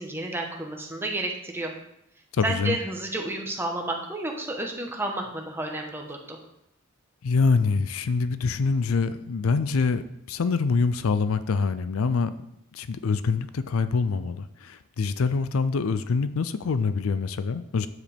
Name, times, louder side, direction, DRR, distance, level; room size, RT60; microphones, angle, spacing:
voice 1, 0.0-1.7 2.4-6.4, right 1 dB, 10° right, 1 dB, 1.2 m, -31 dB
voice 2, 2.3-2.8 7.2-12.3 12.7-17.9, left 4 dB, 80° left, 13 dB, 0.5 m, -25 dB
9.3 x 7.5 x 3.5 m, 0.79 s
head